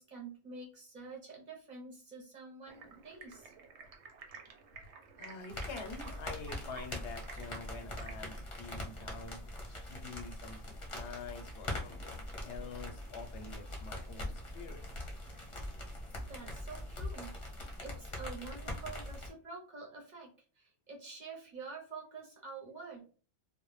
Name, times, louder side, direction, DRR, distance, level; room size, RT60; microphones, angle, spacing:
voice 1, 0.0-3.5 16.2-17.3 17.8-20.3 20.6-23.0, right 4 dB, 50° right, -2 dB, 0.7 m, -47 dB
Stream, 2.7-8.1, right 5 dB, 90° right, 0.9 m, -53 dB
voice 2, 5.2-9.4 9.9-14.8, left 4 dB, 85° left, 5 dB, 0.9 m, -47 dB
sound 1, 5.5-19.3, left 1 dB, 35° left, 0.6 m, -42 dB
2.1 x 2.0 x 3.0 m, 0.40 s
omnidirectional pair, 1.1 m